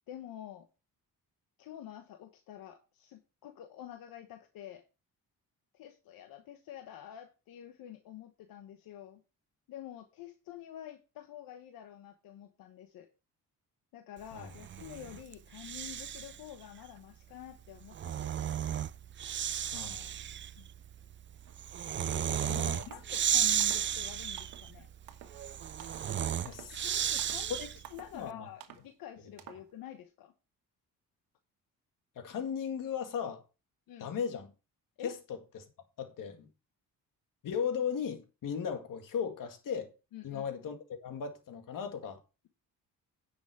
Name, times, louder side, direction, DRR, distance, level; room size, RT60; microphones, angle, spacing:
voice 1, 0.1-0.7 1.6-4.8 5.7-9.2 9.7-13.1 13.9-18.6 20.6-20.7 22.1-24.9 26.8-30.3 33.9-34.1 35.0-35.1 40.1-40.5, left 11 dB, 90° left, 1.1 m, -48 dB
Breathing, 14.5-16.4 17.7-27.9, right 9 dB, 35° right, 0.4 m, -34 dB
voice 2, 19.7-20.1 22.5-22.8 26.4-26.9 27.3-27.7 28.1-28.5 32.2-33.4 34.0-34.5 35.0-35.1 35.5-35.6 36.0-36.5 37.4-39.9 40.2-40.8 41.0-42.2, left 7 dB, 70° left, 2.1 m, -36 dB
sound 1, 21.5-21.6 22.0-22.3 22.8-23.2 23.6-24.0 24.4-24.7 25.1-25.4 25.8-26.1 26.5-26.8 27.2-27.5 27.8-28.2 28.6-28.9 29.4-29.7, right 10 dB, 85° right, 1.4 m, -51 dB
10.0 x 6.3 x 4.7 m
cardioid pair, 100°, 34 cm